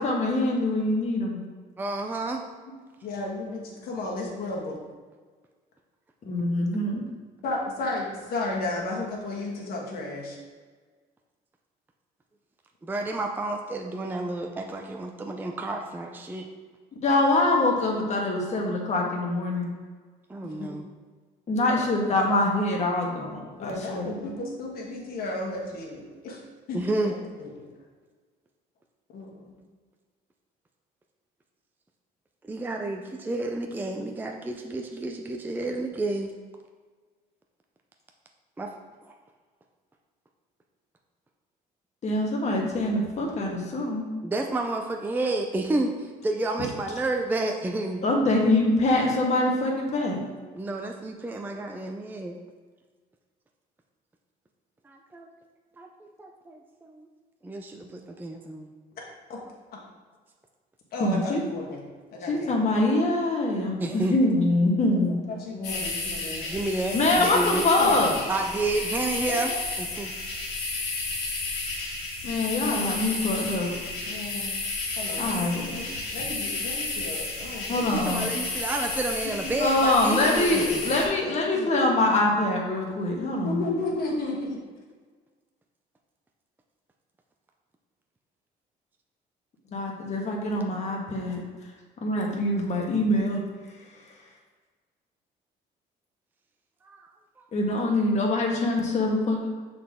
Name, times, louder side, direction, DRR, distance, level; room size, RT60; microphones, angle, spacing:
voice 1, 0.0-1.4 6.2-7.0 17.0-19.7 21.5-24.3 42.0-44.0 48.0-50.2 61.0-61.4 62.3-65.2 66.9-68.1 72.2-73.7 75.2-75.6 77.7-78.3 79.6-83.6 89.7-91.4 92.0-93.4 97.5-99.5, left 2 dB, 45° left, 0 dB, 1.4 m, -24 dB
voice 2, 1.8-2.4 12.8-16.5 20.3-20.9 26.7-27.1 32.4-36.3 38.6-38.7 39.1-39.2 44.2-48.1 50.6-52.4 54.8-55.3 55.8-57.1 57.4-58.7 63.8-64.2 66.5-67.6 68.3-69.5 69.8-70.1 77.9-80.6 96.8-97.0 97.4-97.5, right 2 dB, 10° right, 3 dB, 0.4 m, -30 dB
voice 3, 3.0-4.8 7.4-10.4 20.4-20.7 23.5-26.4 26.7-27.7 29.1-29.5 59.3-59.4 60.9-61.8 62.1-62.6 64.2-64.5 64.7-64.8 65.3-66.5 67.2-67.4 67.8-68.1 69.3-69.6 72.5-72.9 74.1-74.5 74.9-75.9 76.1-78.1 79.2-79.5 80.1-80.8 81.6-81.7 83.2-84.6, left 2 dB, 65° left, -3 dB, 1.7 m, -33 dB
sound 1, 65.6-81.1, left 3 dB, 90° left, 1.6 m, -32 dB
6.6 x 4.1 x 3.6 m, 1.5 s
cardioid pair, 110°, 17 cm